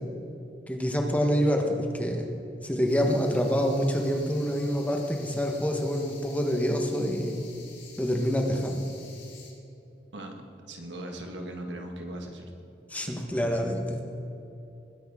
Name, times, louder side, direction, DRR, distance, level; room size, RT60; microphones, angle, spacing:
voice 1, 0.7-2.3 2.6-7.4 8.0-8.9 12.9-14.0, equal, 10° left, 2 dB, 1.2 m, -26 dB
sound 1, 2.8-9.5, left 5 dB, 90° left, 3.4 m, -50 dB
voice 2, 10.7-12.5 13.0-13.6, right 1 dB, 90° right, 2 dB, 1.7 m, -39 dB
20.5 x 10.0 x 3.7 m, 2.8 s
head